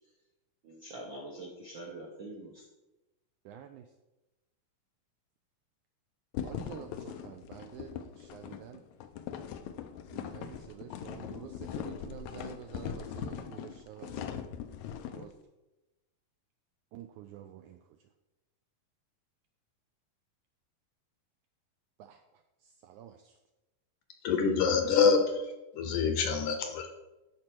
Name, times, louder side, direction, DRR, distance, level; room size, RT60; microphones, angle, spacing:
voice 1, 0.6-2.6, right 1 dB, 70° right, -2 dB, 1.1 m, -44 dB
voice 2, 3.5-3.9 6.4-8.8 10.1-14.5 15.1-15.3 16.9-17.8 22.0-22.2 22.6-23.4, right 10 dB, 85° right, 7 dB, 1.7 m, -48 dB
sound 1, 6.3-15.3, left 9 dB, 90° left, 1.6 m, -40 dB
voice 3, 24.2-25.5 25.7-26.9, left 5 dB, 75° left, 6 dB, 2.0 m, -26 dB
11.5 x 4.4 x 6.0 m, 1.0 s
omnidirectional pair, 4.1 m